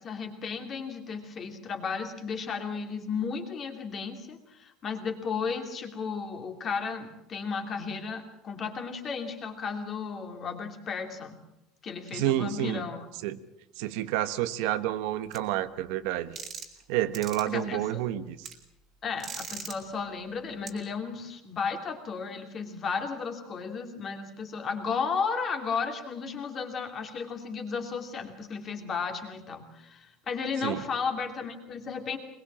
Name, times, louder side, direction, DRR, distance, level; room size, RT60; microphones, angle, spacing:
voice 1, 0.0-11.4 11.8-13.0 17.5-18.0 19.0-32.2, left 5 dB, 25° left, 5 dB, 2.7 m, -34 dB
voice 2, 12.1-12.9 13.2-13.4 13.8-16.4 16.9-18.5 30.6-30.8, right 13 dB, 65° right, 11 dB, 1.2 m, -29 dB
sound 1, 15.3-15.4 16.4-16.8 17.1-17.4 18.4-18.5 19.2-19.7 20.7-20.8, right 6 dB, 25° right, 2.8 m, -39 dB
22.0 x 22.0 x 7.4 m, 0.81 s
cardioid pair, 175°, 0 cm